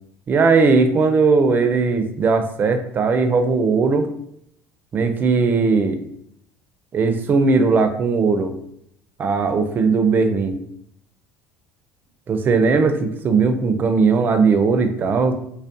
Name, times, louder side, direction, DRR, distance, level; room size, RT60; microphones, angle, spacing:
voice 1, 0.3-4.1 4.9-6.0 6.9-8.5 9.2-10.6 12.3-15.3, right 4 dB, 35° right, 7 dB, 0.4 m, -18 dB
2.3 x 2.1 x 2.6 m, 0.72 s
supercardioid pair, 100°, 6 cm